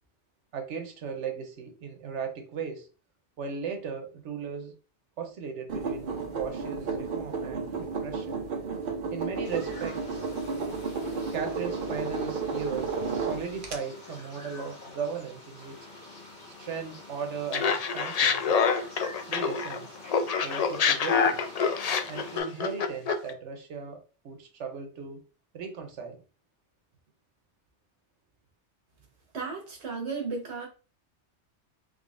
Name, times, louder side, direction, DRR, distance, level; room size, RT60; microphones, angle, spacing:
voice 1, 0.5-2.9 3.4-4.7 5.2-8.4 9.1-10.3 11.3-15.9 16.5-18.6 19.3-20.0 20.4-21.5 22.1-25.2 25.5-26.2, right 6 dB, 85° right, 1.1 m, -37 dB
sound 1, 5.7-13.8, right 4 dB, 50° right, 0.9 m, -32 dB
sound 2, 9.4-22.4, left 2 dB, 40° left, 1.4 m, -47 dB
Laughter, 17.5-19.8 20.1-23.3, left 6 dB, 70° left, 0.3 m, -26 dB
voice 2, 29.3-30.7, right 4 dB, 70° right, 1.5 m, -34 dB
3.8 x 3.5 x 2.5 m
omnidirectional pair, 1.2 m